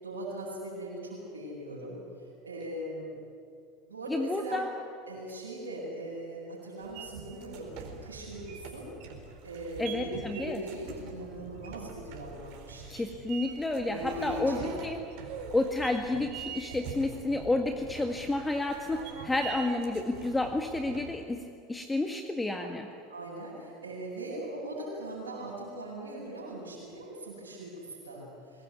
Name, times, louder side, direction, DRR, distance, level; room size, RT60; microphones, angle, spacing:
voice 1, 0.0-2.0 2.4-3.1 3.9-4.6 5.1-7.7 8.0-8.9 9.4-13.1 13.9-14.7 16.7-16.8 22.6-22.7 23.1-28.6, right 1 dB, 80° right, -7 dB, 7.7 m, -40 dB
voice 2, 4.1-4.7 9.8-10.6 12.9-15.0 15.5-22.9, left 2 dB, 10° left, 4 dB, 1.6 m, -30 dB
sound 1, 6.8-21.2, right 6 dB, 55° right, 4.2 m, -44 dB
23.0 x 19.0 x 9.5 m, 2.3 s
figure-of-eight pair, 80°, 0 cm